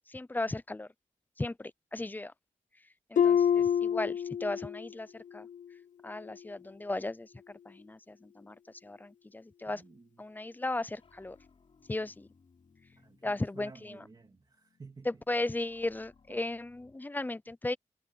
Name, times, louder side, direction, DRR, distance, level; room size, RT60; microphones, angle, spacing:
voice 1, 0.1-0.9 1.4-2.3 3.1-5.5 6.0-8.6 8.8-9.8 10.2-11.4 11.9-12.3 13.2-14.0 15.0-17.8, left 2 dB, 15° left, 0.5 m, -36 dB
Harp, 3.2-4.9 5.3-5.7 6.2-6.4, left 8 dB, 70° left, 0.4 m, -27 dB
voice 2, 9.7-10.1 12.9-15.1 16.3-16.4, right 4 dB, 30° right, 2.3 m, -53 dB
sound 1, 10.9-17.0, left 5 dB, 45° left, 6.8 m, -65 dB
wide cardioid pair, 170°, 13 cm